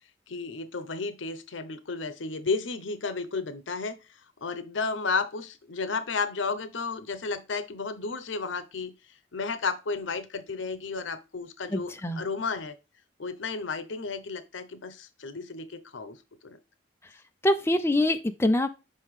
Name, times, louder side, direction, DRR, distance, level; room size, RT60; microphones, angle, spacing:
voice 1, 0.3-4.0 4.4-8.9 9.3-12.8 13.2-16.6, left 4 dB, 85° left, 13 dB, 0.7 m, -33 dB
voice 2, 11.7-12.2 17.4-18.7, left 1 dB, 15° left, 7 dB, 0.5 m, -24 dB
5.6 x 5.3 x 3.2 m, 0.27 s
head